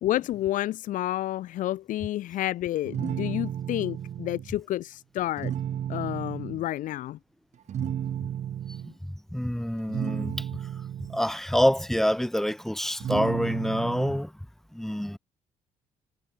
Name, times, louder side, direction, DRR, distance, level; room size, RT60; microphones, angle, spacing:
voice 1, 0.0-5.5 5.9-7.2, left 14 dB, 80° left, 3.7 m, -30 dB
sound 1, 2.8-4.5 5.2-6.6 7.7-8.9 9.8-11.2 13.0-14.2, right 10 dB, 60° right, 5.1 m, -33 dB
voice 2, 8.8-10.5 11.1-14.3 14.7-15.2, equal, 5° left, 3.1 m, -27 dB
cardioid pair, 105°, 13 cm